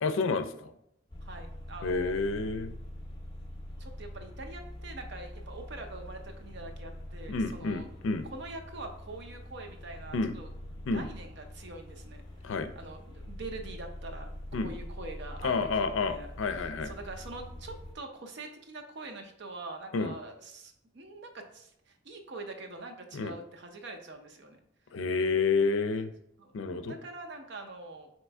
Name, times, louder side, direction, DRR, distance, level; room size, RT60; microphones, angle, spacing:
voice 1, 0.0-0.7 1.8-2.7 7.3-8.2 10.1-10.3 10.9-11.1 12.4-12.7 14.5-14.7 15.4-16.9 19.9-20.1 23.1-23.3 24.9-26.1 26.5-27.0, left 4 dB, 85° left, 8 dB, 0.4 m, -29 dB
sound 1, 1.1-17.9, left 1 dB, 20° left, 0.6 m, -44 dB
voice 2, 1.2-2.2 3.8-7.9 8.3-10.5 10.8-12.2 12.8-14.3 14.6-24.6 26.4-26.5 26.8-28.1, right 2 dB, 60° right, 4 dB, 0.6 m, -44 dB
4.3 x 3.0 x 3.4 m, 0.75 s
head